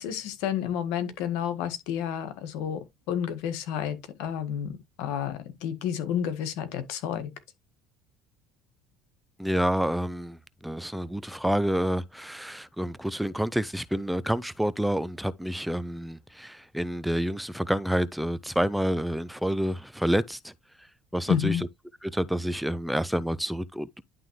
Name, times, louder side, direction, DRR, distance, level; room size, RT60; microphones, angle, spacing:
voice 1, 0.0-7.3 21.3-21.6, left 9 dB, 80° left, 1.6 m, -30 dB
voice 2, 9.4-10.4 10.6-20.5 21.1-21.6 22.0-24.0, equal, 5° right, 0.5 m, -28 dB
11.0 x 3.7 x 3.1 m
supercardioid pair, 90°, 0 cm